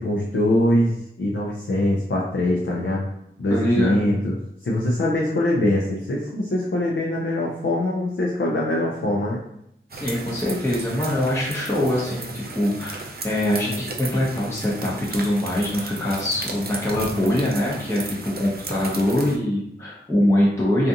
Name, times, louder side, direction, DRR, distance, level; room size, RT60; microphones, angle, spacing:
voice 1, 0.0-3.0 3.4-4.4 4.6-9.4, left 1 dB, 65° left, -3 dB, 0.5 m, -23 dB
voice 2, 3.5-4.0 9.9-20.9, left 1 dB, 15° left, -6 dB, 0.7 m, -23 dB
sound 1, 9.9-19.4, right 3 dB, 45° right, 0.4 m, -35 dB
2.5 x 2.4 x 2.6 m, 0.77 s
wide cardioid pair, 45°, 21 cm